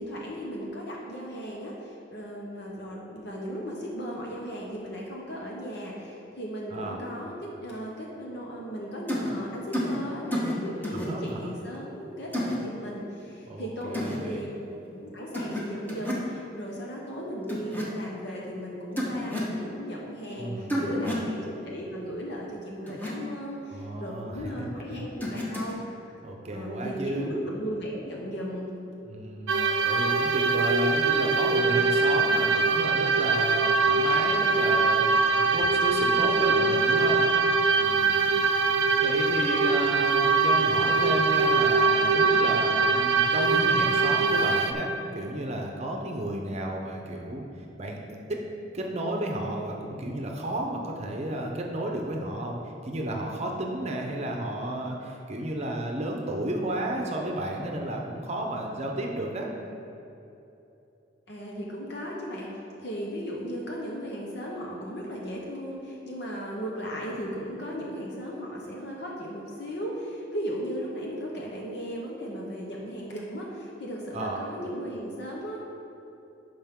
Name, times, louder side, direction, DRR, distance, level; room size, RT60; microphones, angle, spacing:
voice 1, 0.0-14.5 14.9-26.2 26.5-28.7 61.3-75.6, equal, 65° left, -2 dB, 1.0 m, -36 dB
sound 1, 9.1-9.3 9.7-10.0 10.3-10.5 10.8-11.1 12.3-12.6 13.9-14.2 15.3-15.6 15.9-16.3 17.5-17.9 19.0-19.5 20.7-21.3 22.9-23.1 25.2-25.7, left 1 dB, 10° left, 1.2 m, -30 dB
voice 2, 10.9-11.5 13.5-14.4 20.4-21.2 23.7-24.7 26.2-27.3 29.1-37.2 37.7-38.2 39.0-48.4 48.7-59.5 74.1-74.4, right 1 dB, 35° right, 1 dB, 0.7 m, -33 dB
sound 2, 29.5-44.7, right 4 dB, 85° right, 0.5 m, -23 dB
11.5 x 5.3 x 3.7 m, 2.8 s
head